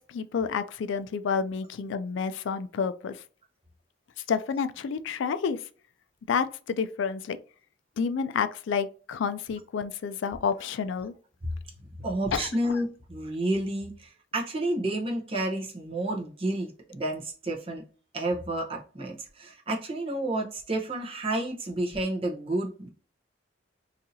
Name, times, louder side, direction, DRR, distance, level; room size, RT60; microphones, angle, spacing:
voice 1, 0.0-3.2 4.3-5.6 6.3-7.4 8.0-11.1 12.3-12.8, left 6 dB, 70° left, 0.3 m, -29 dB
voice 2, 12.0-17.8 18.1-22.9, right 1 dB, 30° right, 0.8 m, -30 dB
4.0 x 2.7 x 2.6 m
head